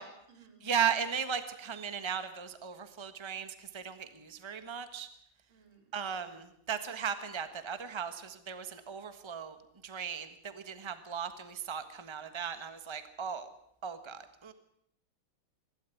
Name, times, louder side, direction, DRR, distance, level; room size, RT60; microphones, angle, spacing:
voice 1, 0.0-0.6 5.5-5.8, right 3 dB, 85° right, 3 dB, 4.7 m, -56 dB
voice 2, 0.6-5.1 5.9-9.5 9.8-13.5 13.8-14.5, right 7 dB, 15° right, 10 dB, 1.3 m, -36 dB
25.5 x 12.5 x 9.3 m, 0.72 s
omnidirectional pair, 2.2 m